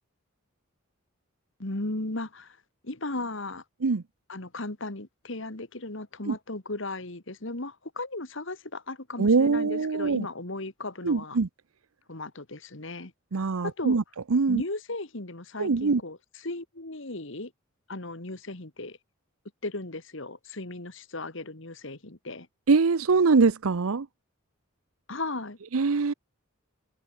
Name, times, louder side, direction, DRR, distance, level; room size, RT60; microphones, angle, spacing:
voice 1, 1.6-2.6 2.8-3.6 4.3-11.4 12.1-13.1 13.6-14.0 14.5-16.2 16.4-17.5 17.9-19.0 19.6-22.5 25.1-25.6, left 2 dB, 60° left, 2.1 m, -36 dB
voice 2, 9.2-10.3 11.0-11.5 13.3-14.0 14.3-14.6 15.6-16.0 22.7-24.1 25.7-26.1, right 4 dB, 85° right, 0.7 m, -23 dB
head